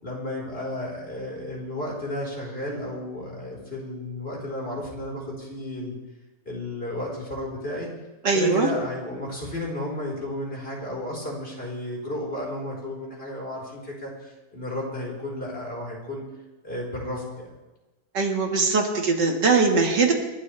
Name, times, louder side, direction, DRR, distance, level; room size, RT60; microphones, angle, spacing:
voice 1, 0.0-6.0 6.4-7.9 8.3-16.2 16.6-17.5, left 1 dB, 35° left, -3 dB, 4.7 m, -33 dB
voice 2, 8.2-8.7 18.1-20.1, right 4 dB, 80° right, 2 dB, 2.6 m, -21 dB
29.0 x 12.5 x 3.4 m, 1.1 s
omnidirectional pair, 1.9 m